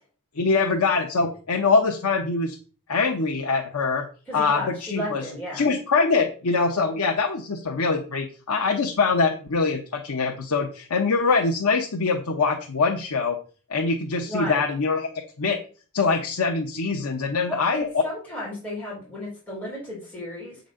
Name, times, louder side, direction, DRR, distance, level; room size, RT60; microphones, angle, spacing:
voice 1, 0.4-2.6 2.9-4.1 4.3-5.2 5.5-13.4 13.7-15.1 15.4-15.6 15.9-18.0, left 4 dB, 85° left, 3 dB, 0.9 m, -23 dB
voice 2, 4.3-5.7 14.2-14.6 17.5-20.6, left 1 dB, 10° left, -7 dB, 3.7 m, -33 dB
7.9 x 4.1 x 6.3 m, 0.39 s
head